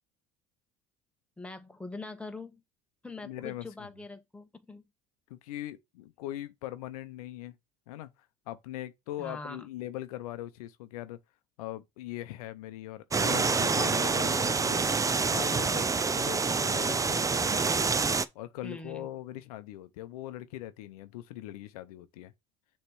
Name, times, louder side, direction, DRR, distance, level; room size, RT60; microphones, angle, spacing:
voice 1, 1.4-2.6 3.0-4.8 9.2-9.7 18.6-19.1, left 3 dB, 5° left, 1.3 m, -43 dB
voice 2, 3.2-3.9 5.3-7.6 7.9-8.1 8.5-11.2 11.6-14.9 15.3-15.9 16.2-17.4 18.3-22.3, left 14 dB, 85° left, 0.7 m, -41 dB
sound 1, 13.1-18.2, right 4 dB, 15° right, 0.5 m, -27 dB
6.7 x 3.2 x 4.6 m
hypercardioid pair, 80°, 19 cm